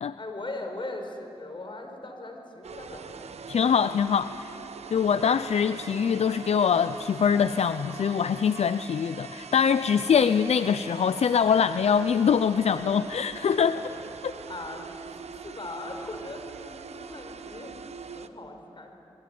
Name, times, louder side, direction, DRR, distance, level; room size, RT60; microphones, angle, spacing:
voice 1, 0.2-3.2 10.2-10.4 13.6-13.8 14.5-17.7 18.2-18.9, left 2 dB, 50° left, 4 dB, 5.2 m, -39 dB
sound 1, 2.6-18.3, right 6 dB, 85° right, 1.0 m, -42 dB
voice 2, 3.5-4.5 4.9-13.8 14.2-14.3, left 7 dB, 80° left, 12 dB, 0.6 m, -23 dB
26.0 x 22.5 x 9.4 m, 3.0 s
cardioid pair, 45°, 11 cm